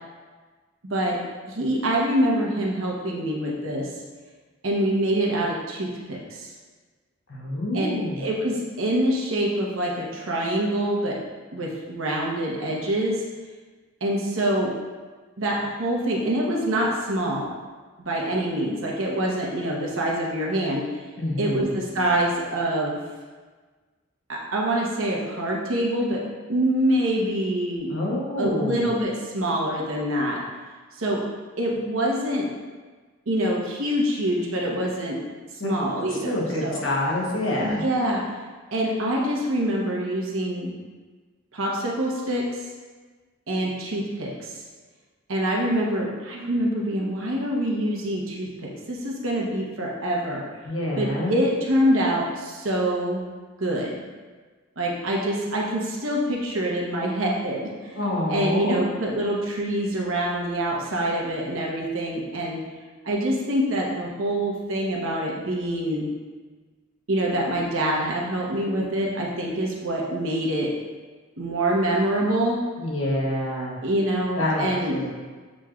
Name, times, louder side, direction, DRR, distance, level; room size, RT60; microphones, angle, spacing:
voice 1, 0.8-1.2 1.5-3.9 4.6-6.5 7.7-11.2 11.5-13.2 14.0-14.7 15.4-17.5 18.0-20.9 21.4-23.0 24.3-26.2 26.5-27.9 28.4-30.4 30.9-31.2 31.6-32.5 33.3-35.2 35.5-36.9 37.6-38.2 38.7-40.7 41.5-42.6 43.5-44.5 45.3-50.4 51.0-53.2 53.6-54.1 54.8-62.6 63.0-66.1 67.1-70.7 71.4-72.6 73.8-75.0, right 1 dB, 80° right, -2 dB, 0.9 m, -25 dB
voice 2, 7.3-8.3 21.2-21.7 27.9-28.9 35.6-35.7 36.2-37.8 50.6-51.3 58.0-58.8 72.8-73.8 74.4-75.1, left 1 dB, 70° left, -3 dB, 1.1 m, -27 dB
7.1 x 3.1 x 2.4 m, 1.4 s
head